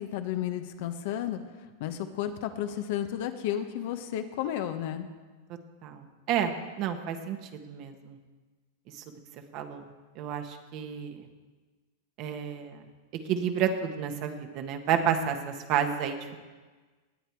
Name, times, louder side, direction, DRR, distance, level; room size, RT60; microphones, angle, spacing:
voice 1, 0.0-1.4 1.8-5.1, left 11 dB, 60° left, 8 dB, 1.2 m, -32 dB
voice 2, 5.8-6.5 6.8-7.4 7.7-8.2 9.5-9.8 10.1-11.2 12.2-12.8 13.3-16.4, right 8 dB, 45° right, 5 dB, 1.5 m, -30 dB
19.0 x 8.3 x 4.8 m, 1.3 s
hypercardioid pair, 130°, 0 cm